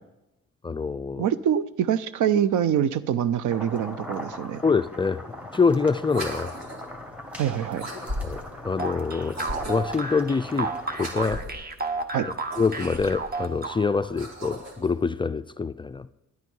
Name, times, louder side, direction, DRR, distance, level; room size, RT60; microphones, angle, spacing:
voice 1, 0.6-1.2 4.6-6.5 8.2-9.4 9.7-11.4 12.2-16.1, left 4 dB, 15° left, 0.3 m, -25 dB
voice 2, 1.2-4.6 7.4-7.8 12.1-12.3, right 9 dB, 80° right, 0.7 m, -24 dB
sound 1, 3.5-11.1, left 1 dB, 5° right, 1.6 m, -40 dB
sound 2, 6.0-6.9 7.7-8.6 9.3-10.0 10.9-11.6 12.4-13.4 14.0-14.9, equal, 60° right, 2.9 m, -36 dB
sound 3, 8.8-14.1, right 3 dB, 30° right, 1.1 m, -32 dB
11.0 x 9.3 x 5.4 m
cardioid pair, 90°, 30 cm